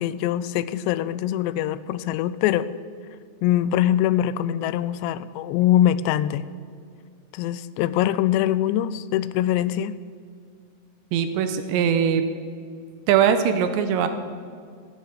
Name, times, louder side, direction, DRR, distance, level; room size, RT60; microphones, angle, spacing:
voice 1, 0.0-2.7 3.4-6.5 7.3-10.0, left 12 dB, 80° left, 13 dB, 2.6 m, -23 dB
voice 2, 11.1-12.2 13.1-14.1, right 8 dB, 80° right, 9 dB, 3.0 m, -21 dB
13.5 x 9.7 x 8.5 m, 2.1 s
omnidirectional pair, 5.2 m